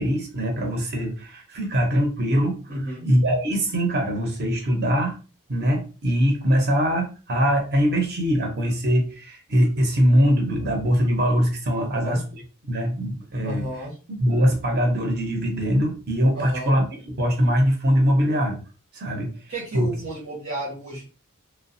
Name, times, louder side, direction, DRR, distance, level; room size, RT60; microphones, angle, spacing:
voice 1, 0.0-2.6 3.0-5.2 5.5-13.6 14.1-16.8 17.2-18.6 18.9-19.3 19.7-19.9, equal, 50° right, 2 dB, 0.8 m, -22 dB
voice 2, 2.7-3.1 11.8-12.2 13.4-13.9 16.3-16.8 19.5-21.0, right 1 dB, 90° right, -5 dB, 1.2 m, -31 dB
3.1 x 2.3 x 2.6 m, 0.34 s
head